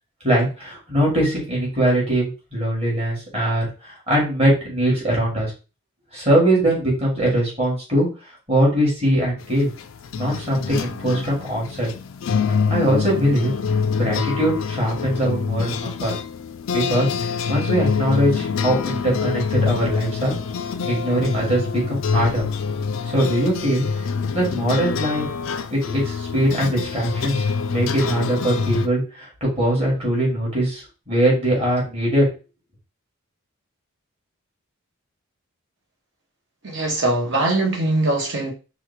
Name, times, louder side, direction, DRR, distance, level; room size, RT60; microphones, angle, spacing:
voice 1, 0.2-5.5 6.1-8.1 8.5-9.7 10.1-11.9 12.7-13.6 13.9-16.2 16.7-20.3 20.9-22.5 23.1-23.8 24.3-25.3 25.7-32.3, right 1 dB, 30° right, -4 dB, 2.3 m, -21 dB
sound 1, 9.4-28.9, left 5 dB, 60° left, 0.4 m, -26 dB
voice 2, 36.6-38.5, right 2 dB, 55° right, 0 dB, 1.4 m, -21 dB
4.8 x 2.2 x 4.1 m, 0.32 s
head